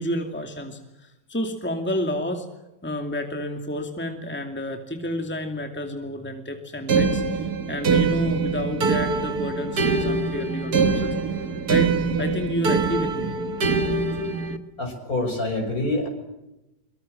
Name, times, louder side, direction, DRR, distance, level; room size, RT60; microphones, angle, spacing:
voice 1, 0.0-2.5 2.8-11.1 11.7-11.9 12.2-13.4, left 1 dB, 5° left, 5 dB, 2.5 m, -30 dB
sound 1, 6.9-14.6, right 4 dB, 60° right, 2.1 m, -23 dB
voice 2, 14.8-16.1, left 2 dB, 55° left, 5 dB, 6.2 m, -26 dB
24.5 x 23.5 x 7.7 m, 0.95 s
omnidirectional pair, 1.9 m